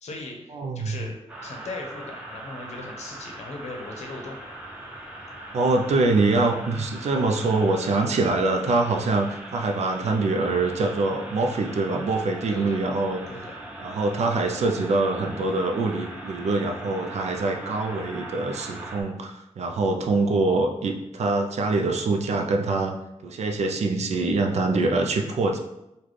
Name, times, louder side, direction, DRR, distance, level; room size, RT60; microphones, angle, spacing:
voice 1, 0.0-4.4 12.5-12.8 13.3-13.4, left 2 dB, 80° left, 1 dB, 0.7 m, -38 dB
voice 2, 0.5-1.0 5.5-13.2 13.8-22.9 23.2-25.6, right 3 dB, 75° right, 3 dB, 0.4 m, -24 dB
sound 1, 1.3-19.0, right 1 dB, 10° right, 0.5 m, -40 dB
3.2 x 2.2 x 3.9 m, 0.89 s
wide cardioid pair, 145°, 11 cm